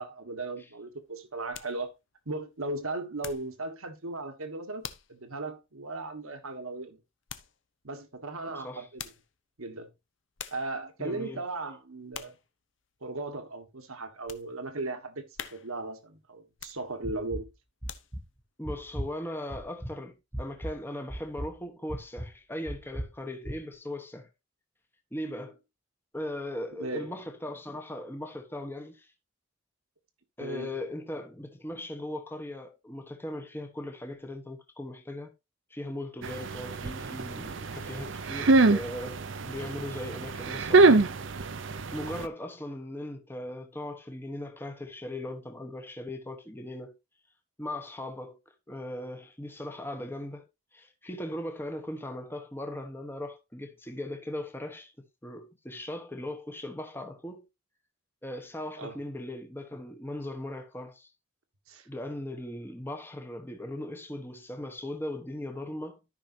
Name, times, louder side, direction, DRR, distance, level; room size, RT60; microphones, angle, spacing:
voice 1, 0.0-1.9 2.2-7.0 7.8-9.0 9.6-9.9 10.5-12.3 13.0-17.5 26.8-27.1 30.4-30.8 58.8-59.0 61.7-61.9, right 2 dB, 90° right, 1.6 m, -37 dB
sound 1, 0.9-3.6 4.0-4.3 4.8-5.2 5.6-5.7 7.3-7.6 8.7-9.4 10.0-10.1 10.4-10.8 11.2-11.6 12.1-12.5 13.0-13.1 13.6-14.5 14.9-15.0 15.3-15.9 16.5-17.2 17.6-18.4 18.8-18.9, left 9 dB, 65° left, 0.8 m, -45 dB
voice 2, 8.5-8.9 11.0-11.4 18.6-24.3 25.1-25.6 26.1-29.1 30.4-35.3 35.7-41.1 41.9-47.0 47.6-48.4 48.7-50.5 50.7-54.9 55.2-57.4 58.2-61.1 61.9-66.0, left 1 dB, 10° left, 1.0 m, -38 dB
sound 2, 17.0-17.5 17.8-18.2 18.6-19.1 19.5-19.9 20.3-20.7 21.1-21.5 21.9-22.3 22.7-23.1 23.5-23.6, right 1 dB, 10° right, 1.0 m, -36 dB
sound 3, 36.2-42.3, right 3 dB, 65° right, 0.7 m, -25 dB
13.5 x 5.6 x 2.7 m
head